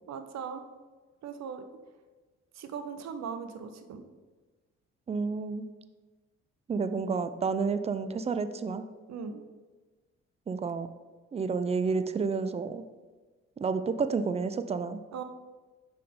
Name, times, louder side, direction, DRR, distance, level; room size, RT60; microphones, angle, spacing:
voice 1, 0.1-0.6 1.2-1.6 2.5-4.0 9.1-9.4 15.1-15.2, right 6 dB, 45° right, 8 dB, 0.7 m, -39 dB
voice 2, 5.1-5.7 6.7-8.8 10.5-10.9 11.3-12.8 13.6-15.0, right 5 dB, 20° right, 11 dB, 0.4 m, -30 dB
5.7 x 3.5 x 5.0 m, 1.3 s
figure-of-eight pair, 45°, 36 cm